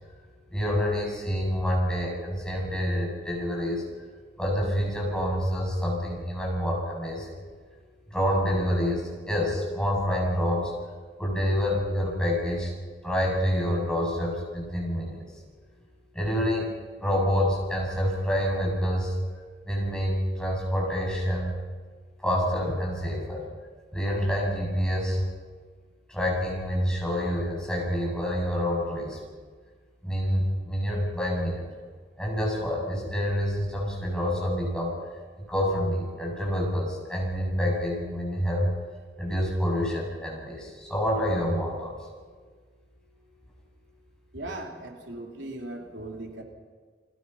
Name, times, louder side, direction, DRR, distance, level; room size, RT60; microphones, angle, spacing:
voice 1, 0.5-3.8 4.4-7.4 8.1-10.7 11.2-12.7 13.0-15.2 16.1-16.7 17.0-19.2 19.6-21.5 22.2-23.4 23.9-25.2 26.1-29.2 30.0-31.7 32.2-35.0 35.4-38.7 39.2-41.9, equal, 5° left, -3 dB, 7.9 m, -27 dB
voice 2, 44.3-46.4, right 2 dB, 85° right, 1 dB, 3.4 m, -38 dB
30.0 x 22.5 x 5.8 m, 1.5 s
head